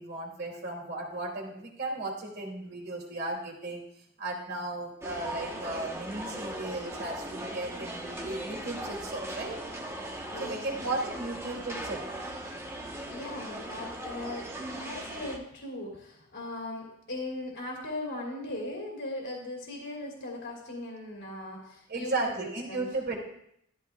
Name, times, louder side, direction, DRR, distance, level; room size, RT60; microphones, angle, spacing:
voice 1, 0.0-3.8 4.2-9.6 10.4-12.0 21.9-23.2, right 2 dB, 50° right, -1 dB, 2.6 m, -35 dB
sound 1, 5.0-15.4, right 1 dB, 15° right, 1.0 m, -39 dB
voice 2, 10.3-11.1 13.1-22.8, left 1 dB, 65° left, -3 dB, 2.7 m, -39 dB
13.0 x 13.0 x 2.3 m, 0.73 s
head